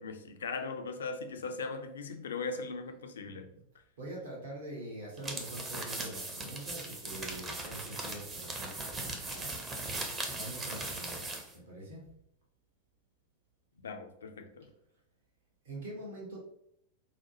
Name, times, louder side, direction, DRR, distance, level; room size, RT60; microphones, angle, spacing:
voice 1, 0.0-3.5 13.8-14.7, left 4 dB, 65° left, 0.4 m, -39 dB
voice 2, 3.2-3.6 4.0-9.5 10.4-12.0 15.6-16.4, right 1 dB, 60° right, 1.2 m, -44 dB
sound 1, 5.2-11.5, right 2 dB, 20° right, 0.7 m, -39 dB
4.8 x 2.1 x 3.0 m
figure-of-eight pair, 90°, 0 cm